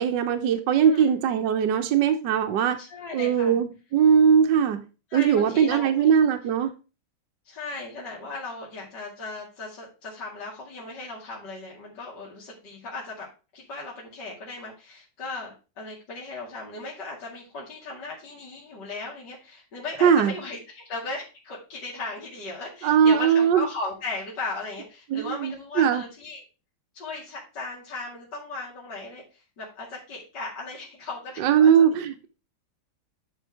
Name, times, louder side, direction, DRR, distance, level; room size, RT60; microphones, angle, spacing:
voice 1, 0.0-2.8 3.1-4.8 5.1-6.7 20.0-20.3 22.8-23.6 25.1-26.0 31.4-32.3, right 7 dB, 65° right, 1.5 m, -20 dB
voice 2, 0.8-1.2 2.8-3.6 5.1-6.1 7.4-13.3 13.5-26.4 26.9-31.9, left 3 dB, 55° left, 2.9 m, -37 dB
10.5 x 4.2 x 4.7 m
omnidirectional pair, 2.2 m